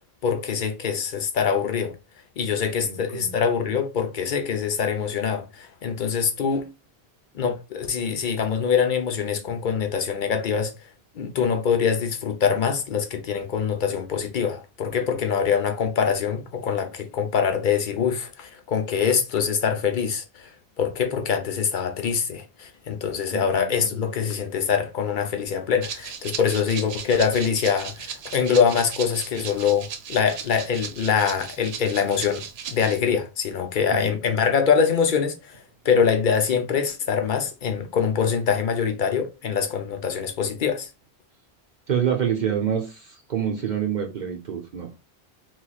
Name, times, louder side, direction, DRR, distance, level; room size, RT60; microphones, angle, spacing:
voice 1, 0.2-1.9 2.4-6.7 7.3-10.9 11.1-20.5 20.8-32.4 32.7-40.9, left 6 dB, 55° left, 0.8 m, -24 dB
voice 2, 2.8-3.3 23.3-24.1 33.9-34.1 41.9-44.9, right 8 dB, 55° right, 0.7 m, -27 dB
Rattle (instrument), 25.8-33.0, right 7 dB, 85° right, 0.9 m, -37 dB
3.9 x 3.0 x 2.3 m
omnidirectional pair, 1.0 m